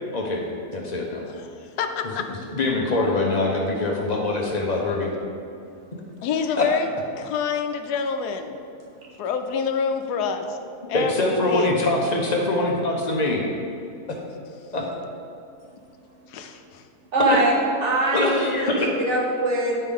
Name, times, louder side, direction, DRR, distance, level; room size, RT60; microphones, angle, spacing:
voice 1, 0.1-0.4 0.7-1.2 2.5-5.1 6.6-6.7 10.9-13.5 14.7-14.8 18.1-18.9, left 2 dB, 40° left, -1 dB, 0.7 m, -23 dB
voice 2, 1.3-2.3 6.2-6.9 7.2-8.6 9.2-10.6 10.9-11.7 16.3-16.8, left 6 dB, 80° left, 6 dB, 1.1 m, -27 dB
voice 3, 17.1-17.5 17.8-19.8, right 2 dB, 50° right, -2 dB, 1.1 m, -22 dB
9.9 x 4.4 x 3.6 m, 2.6 s
omnidirectional pair, 1.7 m